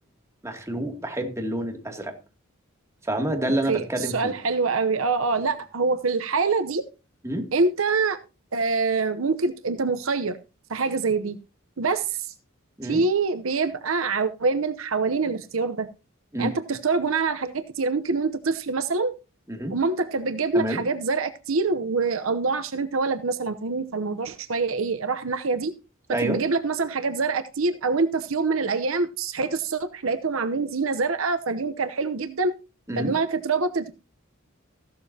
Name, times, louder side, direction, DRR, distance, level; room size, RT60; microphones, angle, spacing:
voice 1, 0.4-2.1 3.0-4.3 7.2-7.5 12.8-13.0 16.3-16.5 19.5-19.8 20.5-20.8 26.1-26.4 32.9-33.1, right 1 dB, 15° right, 2.5 m, -28 dB
voice 2, 3.7-6.8 7.5-8.2 8.5-10.4 10.7-11.4 11.8-12.3 12.8-15.9 16.4-19.1 19.7-25.7 26.1-32.5 33.0-33.9, right 4 dB, 75° right, 0.9 m, -25 dB
15.5 x 12.0 x 2.8 m
head